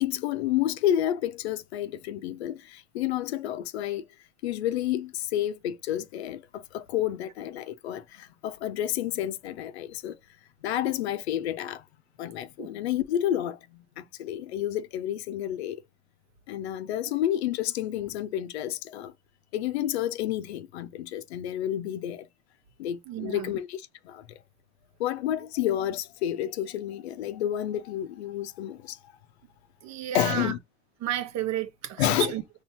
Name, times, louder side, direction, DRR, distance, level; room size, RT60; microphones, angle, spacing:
voice 1, 0.0-4.0 4.4-10.2 10.6-11.8 12.2-15.8 16.5-19.1 19.5-22.3 22.8-24.2 25.0-29.1 30.1-30.6 32.0-32.3, left 12 dB, 85° left, 0.7 m, -30 dB
voice 2, 23.1-23.5 29.8-30.5 31.0-32.4, right 12 dB, 60° right, 1.3 m, -32 dB
5.4 x 3.1 x 2.9 m
hypercardioid pair, 75°, 31 cm